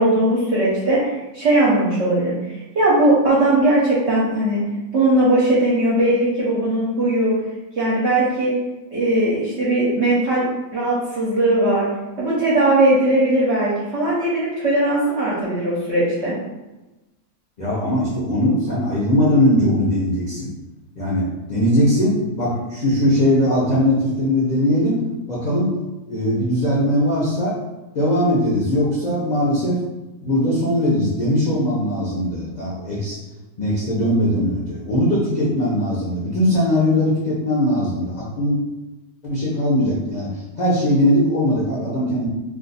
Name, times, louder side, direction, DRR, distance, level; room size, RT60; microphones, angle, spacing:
voice 1, 0.0-4.6 4.9-7.4 7.8-8.5 8.9-10.5 10.7-11.9 12.2-16.3, right 1 dB, 60° right, -6 dB, 0.8 m, -19 dB
voice 2, 17.6-20.5 21.0-25.7 26.1-27.6 27.9-29.8 30.2-33.2 33.6-38.6 39.2-42.3, left 1 dB, 55° left, -7 dB, 0.4 m, -20 dB
2.5 x 2.4 x 4.0 m, 1.1 s
omnidirectional pair, 1.8 m